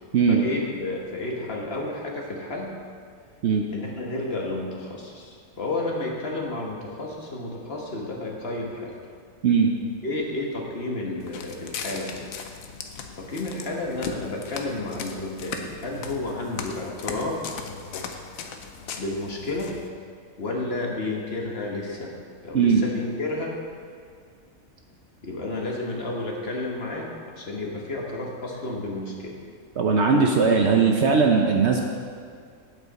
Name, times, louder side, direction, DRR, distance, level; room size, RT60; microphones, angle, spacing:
voice 1, 0.3-2.7 3.7-9.0 10.0-12.1 13.2-17.5 19.0-19.7 20.4-22.1 22.4-23.5 25.2-27.1 27.4-29.4, left 2 dB, 45° left, -1 dB, 1.3 m, -31 dB
Walk footsteps, 11.2-19.9, left 6 dB, 75° left, 1.1 m, -38 dB
voice 2, 29.8-31.8, right 5 dB, 60° right, 2 dB, 0.8 m, -19 dB
8.7 x 8.2 x 4.1 m, 2.1 s
omnidirectional pair, 1.5 m